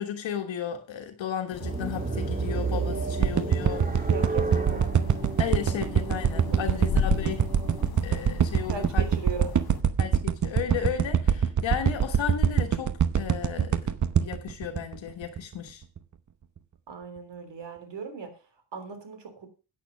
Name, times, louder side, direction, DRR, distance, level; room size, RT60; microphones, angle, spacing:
voice 1, 0.0-3.9 4.5-4.6 5.4-7.5 8.0-9.1 10.0-13.9 14.2-15.8, left 9 dB, 75° left, 1.4 m, -34 dB
sound 1, 1.5-9.8, left 10 dB, 55° left, 0.8 m, -37 dB
sound 2, 1.6-7.9, right 4 dB, 20° right, 2.1 m, -32 dB
sound 3, 3.2-15.5 16.0-16.1, right 8 dB, 40° right, 0.9 m, -24 dB
voice 2, 4.1-4.8 6.5-6.6 8.7-9.5 16.9-19.5, right 4 dB, 65° right, 3.3 m, -38 dB
9.2 x 8.6 x 5.1 m
cardioid pair, 80°, 46 cm